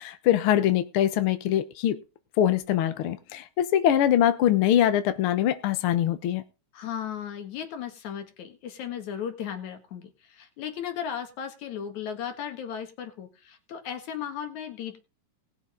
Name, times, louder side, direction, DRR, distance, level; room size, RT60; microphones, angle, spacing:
voice 1, 0.0-2.0 2.4-6.4, left 11 dB, 80° left, 1.2 m, -23 dB
voice 2, 6.7-15.0, left 8 dB, 60° left, 2.8 m, -36 dB
19.0 x 7.0 x 3.8 m
omnidirectional pair, 3.9 m